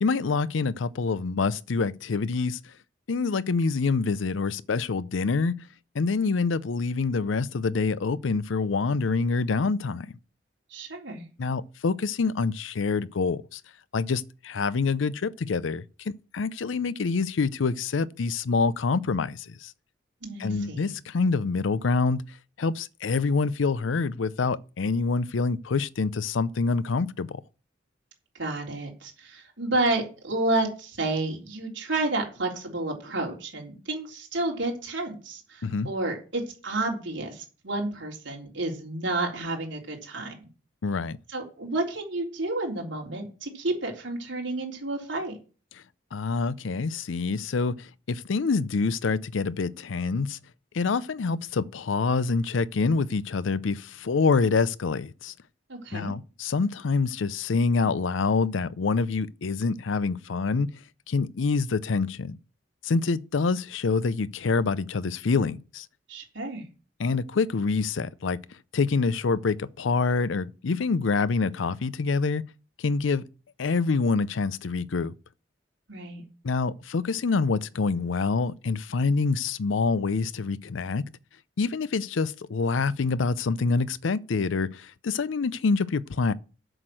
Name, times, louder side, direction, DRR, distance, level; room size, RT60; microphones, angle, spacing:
voice 1, 0.0-2.6 3.1-5.6 5.9-10.2 11.4-13.6 13.9-19.7 20.4-22.2 22.6-27.4 35.6-35.9 40.8-41.2 46.1-50.4 50.7-55.3 55.9-60.7 61.1-62.4 62.8-65.9 67.0-68.4 68.7-72.4 72.8-73.2 73.6-75.1 76.4-81.0 81.6-86.3, left 4 dB, 80° left, 0.5 m, -26 dB
voice 2, 10.7-11.3 20.2-20.9 28.3-40.5 41.3-45.4 55.7-56.1 66.1-66.7 75.9-76.2, right 2 dB, 70° right, 3.6 m, -30 dB
7.8 x 6.2 x 7.6 m
head